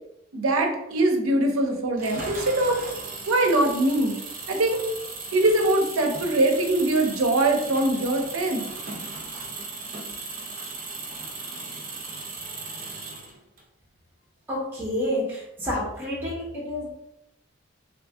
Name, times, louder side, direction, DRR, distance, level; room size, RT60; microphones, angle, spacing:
voice 1, 0.3-2.8 3.3-4.2 4.5-4.8 5.3-8.7, right 2 dB, 80° right, 3 dB, 0.6 m, -22 dB
Engine, 2.0-13.6, right 3 dB, 40° right, 0.6 m, -37 dB
voice 2, 14.5-16.9, left 1 dB, 10° right, -6 dB, 1.1 m, -29 dB
2.8 x 2.7 x 3.4 m, 0.83 s
head